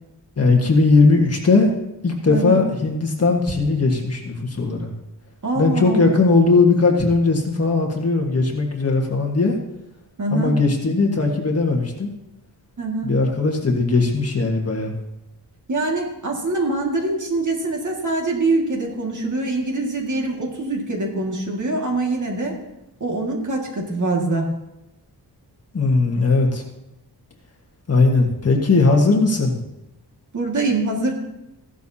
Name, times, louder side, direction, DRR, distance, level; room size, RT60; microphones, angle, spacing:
voice 1, 0.4-1.7 2.0-4.9 5.6-9.5 10.3-12.1 13.0-14.9 25.7-26.6 27.9-29.6, left 3 dB, 35° left, 1 dB, 1.6 m, -18 dB
voice 2, 2.3-2.6 5.4-6.1 10.2-10.5 12.8-13.1 15.7-22.5 23.0-24.5 30.3-31.1, right 2 dB, 45° right, 0 dB, 2.1 m, -24 dB
15.5 x 12.0 x 2.9 m, 0.89 s
wide cardioid pair, 170°, 41 cm